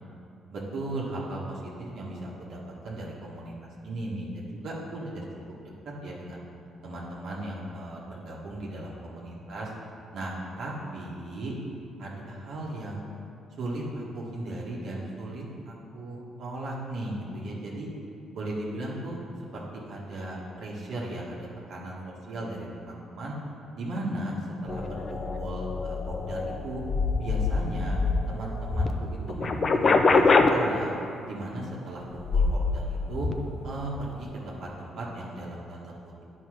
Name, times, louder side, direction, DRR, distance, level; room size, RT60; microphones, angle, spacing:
voice 1, 0.5-5.2 6.0-6.4 6.8-9.7 10.1-11.5 12.0-13.0 13.6-17.9 18.3-19.2 19.5-23.3 23.7-26.8 27.2-28.0 28.3-30.9 31.3-33.3 33.6-36.1, right 1 dB, 70° right, -5 dB, 1.4 m, -36 dB
sound 1, 24.7-28.9 29.3-30.5 32.2-32.8 33.1-33.3, left 4 dB, 40° left, 0.5 m, -25 dB
9.5 x 5.2 x 4.9 m, 2.6 s
cardioid pair, 95°, 0 cm